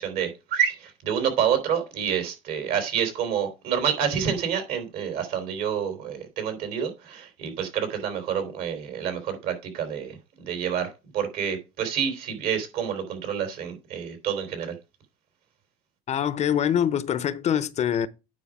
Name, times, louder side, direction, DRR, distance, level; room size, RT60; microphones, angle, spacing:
voice 1, 0.0-10.2 10.4-14.7, right 8 dB, 70° right, 3.5 m, -28 dB
voice 2, 16.1-18.1, left 9 dB, 45° left, 0.7 m, -24 dB
9.4 x 5.0 x 4.8 m
supercardioid pair, 95°, 16 cm